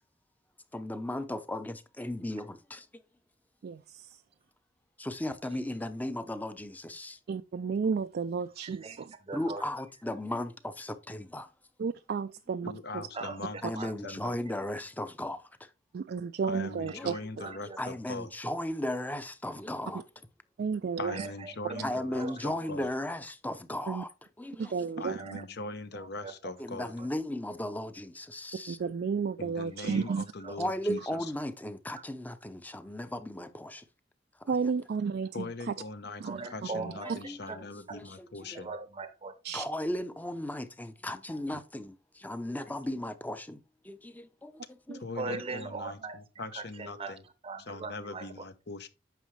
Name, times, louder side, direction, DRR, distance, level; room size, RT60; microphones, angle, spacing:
voice 1, 0.7-2.9 5.0-7.2 9.3-11.5 13.6-15.4 16.9-17.1 17.8-20.0 21.8-24.1 24.4-24.7 26.6-28.8 30.6-33.8 36.7-36.8 37.2-37.6 38.5-38.6 39.5-43.6 43.8-45.0, left 1 dB, 10° left, 0.7 m, -36 dB
voice 2, 3.6-4.2 7.3-9.1 11.8-13.0 15.9-17.1 20.6-21.3 23.9-24.0 24.6-25.4 28.7-30.2 30.9-31.0 34.5-35.7 36.2-36.4 37.1-37.2 39.4-39.7 44.9-45.0, right 5 dB, 55° right, 0.3 m, -32 dB
voice 3, 8.6-9.7 12.9-13.4 13.7-14.1 16.9-17.1 17.4-17.8 21.0-22.3 22.6-22.7 25.2-25.7 25.9-26.3 27.0-27.1 29.7-30.6 36.2-38.0 38.5-39.3 45.1-48.4, right 4 dB, 30° right, 0.7 m, -41 dB
voice 4, 12.6-14.3 16.5-18.3 21.0-22.9 25.0-26.9 29.4-31.2 35.3-38.7 45.0-47.2 47.7-48.9, left 3 dB, 65° left, 0.9 m, -41 dB
9.1 x 6.1 x 3.2 m
head